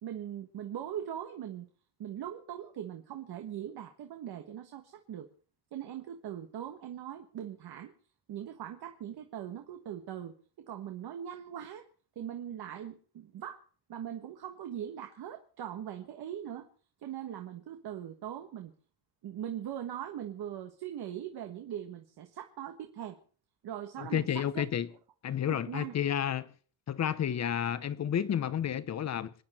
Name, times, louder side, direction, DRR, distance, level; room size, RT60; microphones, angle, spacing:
voice 1, 0.0-1.7 2.0-5.3 5.7-7.9 8.3-11.8 12.1-13.6 13.9-16.7 17.0-18.7 19.2-23.2 23.6-24.7 25.5-25.9, right 10 dB, 75° right, 1.5 m, -41 dB
voice 2, 24.0-24.9 25.2-26.5 26.9-29.3, left 9 dB, 45° left, 0.9 m, -31 dB
27.0 x 10.0 x 4.4 m
wide cardioid pair, 165°, 38 cm